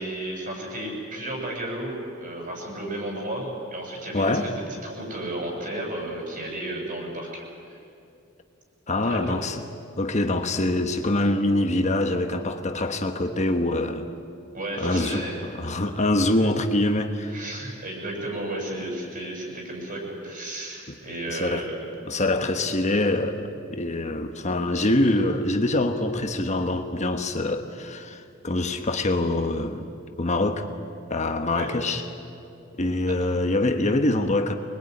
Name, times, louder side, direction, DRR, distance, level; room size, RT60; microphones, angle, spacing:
voice 1, 0.0-7.8 9.0-9.4 14.5-15.4 16.4-16.5 17.3-21.8 31.5-31.7, right 1 dB, 45° right, 7.5 m, -33 dB
voice 2, 4.1-4.5 8.9-9.6 10.0-14.1 14.8-17.4 20.9-21.0 21.3-21.7 22.1-29.9 30.2-30.7 31.1-32.0 32.7-34.6, left 2 dB, 35° left, 1.2 m, -24 dB
25.0 x 21.5 x 9.8 m
head